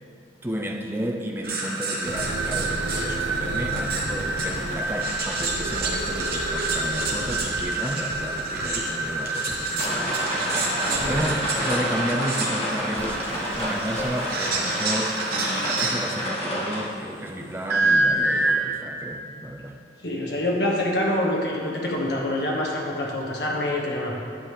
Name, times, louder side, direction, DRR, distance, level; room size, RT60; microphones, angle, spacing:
voice 1, 0.4-10.5 11.1-19.8, right 1 dB, 15° right, 2 dB, 0.5 m, -32 dB
sound 1, 1.4-16.4 17.7-18.5, right 2 dB, 55° right, 1.2 m, -27 dB
sound 2, 2.0-12.4 12.9-13.1 13.5-13.6 14.0-14.1, right 1 dB, 80° right, 0.7 m, -35 dB
sound 3, 9.8-16.9, equal, 35° left, 1.6 m, -29 dB
voice 2, 20.0-24.1, left 1 dB, 65° left, -2 dB, 1.5 m, -26 dB
10.5 x 7.6 x 3.3 m, 2.6 s
head